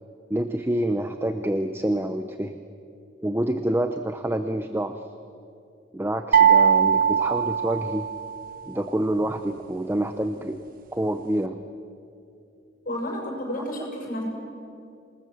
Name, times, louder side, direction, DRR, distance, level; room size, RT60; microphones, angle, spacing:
voice 1, 0.3-2.5 3.2-5.0 5.9-8.1 8.7-10.6 10.9-11.6, right 1 dB, 10° right, 8 dB, 0.7 m, -27 dB
sound 1, 6.3-8.5, right 8 dB, 50° right, 1.0 m, -20 dB
voice 2, 12.8-14.2, left 1 dB, 45° left, -1 dB, 6.8 m, -31 dB
27.5 x 19.5 x 7.8 m, 2.6 s
head